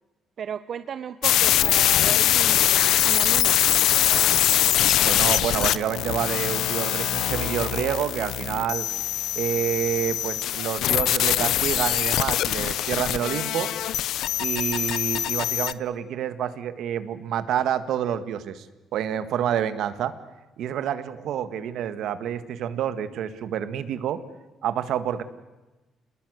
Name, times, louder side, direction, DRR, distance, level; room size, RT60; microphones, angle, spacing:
voice 1, 0.4-3.6, right 8 dB, 50° right, 12 dB, 0.8 m, -35 dB
sound 1, 1.2-15.7, left 12 dB, 80° left, 0.8 m, -23 dB
voice 2, 5.0-8.9 9.4-13.7 14.4-18.7 18.9-20.1 20.6-24.2 24.6-25.2, right 9 dB, 75° right, 11 dB, 1.7 m, -28 dB
28.5 x 20.5 x 8.1 m, 1.1 s
cardioid pair, 125°, 0 cm